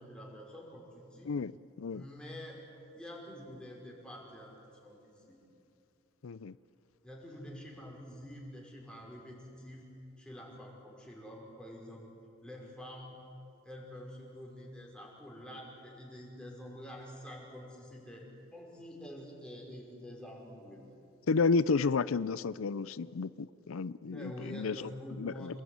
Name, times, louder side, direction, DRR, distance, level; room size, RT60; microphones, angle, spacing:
voice 1, 0.0-1.3 1.9-2.6 2.9-5.4 7.0-9.9 10.2-12.0 12.4-13.2 13.6-20.8 24.0-25.6, equal, 5° left, -2 dB, 5.5 m, -47 dB
voice 2, 6.2-6.5 21.3-24.9 25.2-25.5, left 4 dB, 90° left, 17 dB, 0.5 m, -31 dB
28.5 x 20.5 x 9.5 m, 2.8 s
head